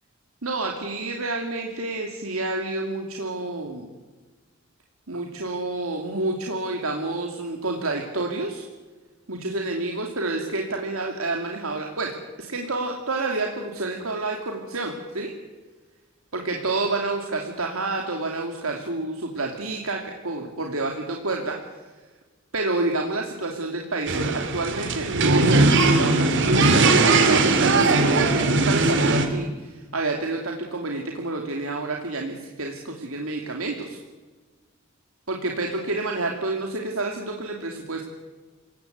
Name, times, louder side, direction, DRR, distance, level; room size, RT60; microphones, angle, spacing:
voice 1, 0.4-3.9 5.1-8.7 9.3-12.1 12.4-15.3 16.3-21.6 22.5-34.0 35.3-38.0, right 2 dB, 90° right, 2 dB, 2.7 m, -29 dB
sound 1, 24.1-29.3, right 3 dB, 60° right, 2.9 m, -19 dB
28.0 x 17.5 x 8.1 m, 1.3 s
head